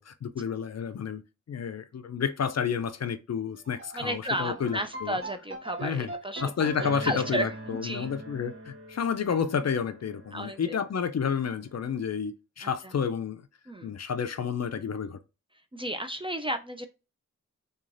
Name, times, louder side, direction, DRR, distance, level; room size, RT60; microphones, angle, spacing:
voice 1, 0.0-5.2 5.8-6.1 6.4-13.4 13.8-15.2, left 7 dB, 55° left, 0.4 m, -30 dB
sound 1, 3.6-11.8, right 1 dB, 40° right, 0.8 m, -42 dB
voice 2, 3.9-8.1 10.3-10.8 12.6-12.9 13.7-13.9 15.7-16.9, right 1 dB, 15° right, 0.3 m, -33 dB
3.0 x 2.3 x 2.5 m
cardioid pair, 50°, 32 cm